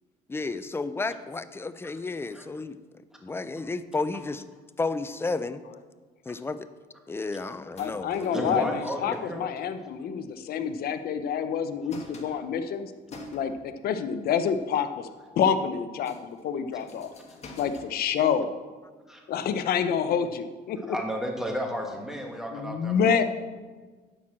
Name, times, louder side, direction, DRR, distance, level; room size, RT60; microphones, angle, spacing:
voice 1, 0.3-2.8 3.2-4.4 4.8-5.6 6.3-6.7 7.1-8.7 9.0-9.2, left 3 dB, 15° left, 12 dB, 0.5 m, -32 dB
sound 1, 7.7-10.8 11.1-11.2 11.5-13.8 14.3-14.8 15.2-15.3 15.8-17.9, left 2 dB, 40° left, 1.4 m, -49 dB
voice 2, 7.8-12.9 13.3-15.1 15.4-17.1 17.6-18.5 19.3-21.0 22.5-23.2, left 7 dB, 65° left, 10 dB, 0.8 m, -27 dB
voice 3, 8.3-9.5 19.1-19.2 20.9-23.2, equal, 5° right, 1 dB, 1.6 m, -32 dB
10.0 x 4.6 x 7.5 m, 1.4 s
cardioid pair, 110°, 17 cm